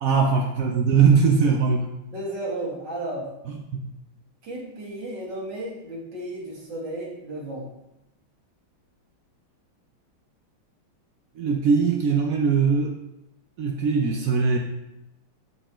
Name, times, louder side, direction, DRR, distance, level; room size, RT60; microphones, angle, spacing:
voice 1, 0.0-1.9 3.5-3.8 11.4-12.9 13.6-14.6, right 5 dB, 80° right, 2 dB, 0.7 m, -21 dB
voice 2, 2.1-3.3 4.4-7.7, right 1 dB, 65° right, -3 dB, 2.6 m, -33 dB
13.0 x 4.5 x 3.0 m, 0.89 s
omnidirectional pair, 2.2 m